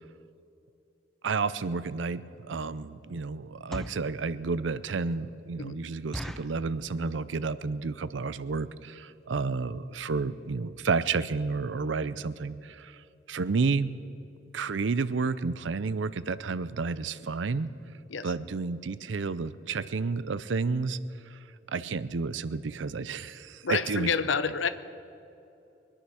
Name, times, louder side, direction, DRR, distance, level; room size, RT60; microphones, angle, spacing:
voice 1, 1.2-13.0 13.3-13.9 14.5-17.7 18.2-21.0 21.3-21.4 21.7-24.1, right 4 dB, 75° right, 16 dB, 0.5 m, -31 dB
sound 1, 1.9-2.0 2.5-2.8 3.5-4.1 4.7-4.8 5.1-5.2 5.5-5.6 6.1-6.6 7.2-7.5 7.8-7.9 8.1-8.4 8.9-9.0 9.2-9.4 9.8-9.9 10.1-10.2, equal, ahead, 0.4 m, -39 dB
voice 2, 23.6-24.7, left 5 dB, 85° left, 12 dB, 0.7 m, -28 dB
22.5 x 10.0 x 6.3 m, 2.7 s
head